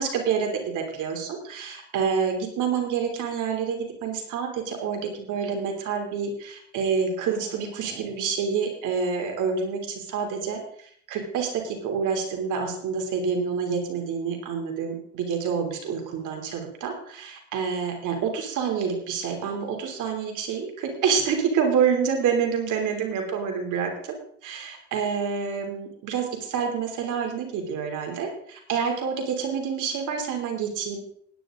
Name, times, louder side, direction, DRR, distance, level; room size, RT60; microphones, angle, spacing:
voice 1, 0.0-10.6 11.1-24.2 24.4-31.0, right 6 dB, 85° right, 2 dB, 3.3 m, -27 dB
16.5 x 10.0 x 3.8 m, 0.62 s
cardioid pair, 90°, 30 cm